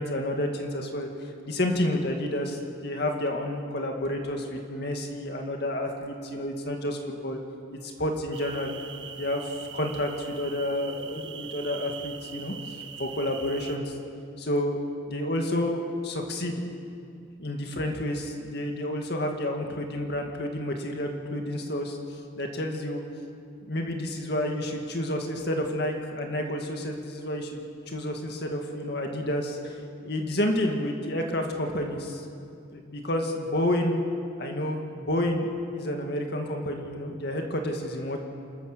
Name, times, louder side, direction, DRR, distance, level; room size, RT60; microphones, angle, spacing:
voice 1, 0.0-7.4 7.8-8.7 9.2-13.9 14.4-16.6 17.4-23.0 23.6-32.2 32.7-33.9 34.4-38.2, left 1 dB, 55° left, 2 dB, 2.1 m, -30 dB
sound 1, 8.3-13.8, right 8 dB, 70° right, 1.4 m, -42 dB
28.5 x 13.5 x 6.8 m, 2.4 s
head